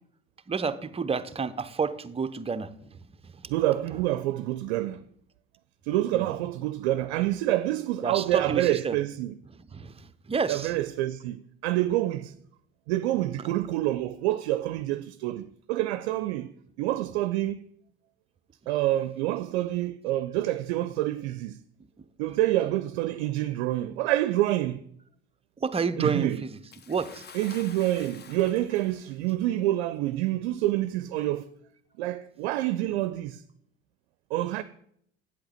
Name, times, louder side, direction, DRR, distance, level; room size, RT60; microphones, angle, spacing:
voice 1, 0.5-3.6 3.9-4.0 6.1-6.3 8.0-9.0 9.6-10.7 13.4-13.5 22.0-22.1 25.6-26.6 26.9-27.3, right 5 dB, 20° right, 0.6 m, -30 dB
voice 2, 3.5-5.0 5.8-9.3 10.5-12.3 12.9-16.5 16.8-17.6 18.7-21.6 22.2-24.9 26.0-26.4 27.4-31.4 32.0-33.4 34.3-34.6, right 15 dB, 75° right, 0.5 m, -27 dB
Bathtub (filling or washing) / Splash splatter, 26.7-29.3 30.2-30.3 31.3-31.4, left 6 dB, 30° left, 0.8 m, -48 dB
8.5 x 7.9 x 4.3 m
hypercardioid pair, 70°, 32 cm